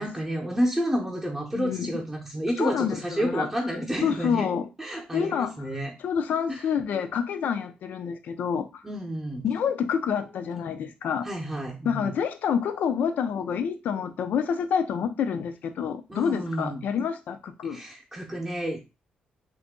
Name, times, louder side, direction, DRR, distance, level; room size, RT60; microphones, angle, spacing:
voice 1, 0.0-4.5 4.8-5.9 6.5-6.6 8.8-9.4 11.2-12.1 16.1-16.8 17.7-18.8, equal, 5° right, 0.8 m, -30 dB
voice 2, 1.5-2.0 2.6-3.7 4.0-4.7 4.9-5.7 6.0-8.8 9.4-11.3 11.8-17.8, left 7 dB, 70° left, 0.5 m, -28 dB
2.7 x 2.5 x 3.6 m
cardioid pair, 110°, 3 cm